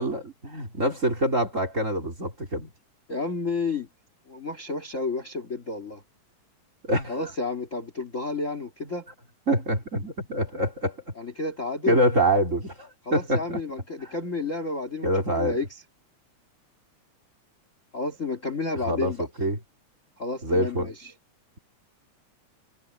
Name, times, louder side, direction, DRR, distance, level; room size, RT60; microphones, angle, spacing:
voice 1, 0.0-2.7 6.9-7.2 9.5-11.0 11.9-13.6 15.0-15.6 18.7-19.1 19.4-19.6 20.4-20.9, right 1 dB, 25° right, 3.9 m, -25 dB
voice 2, 3.1-3.9 4.3-6.0 7.1-9.1 11.2-12.0 13.1-15.7 17.9-19.3 20.2-21.1, left 3 dB, 25° left, 2.2 m, -31 dB
omnidirectional pair, 3.4 m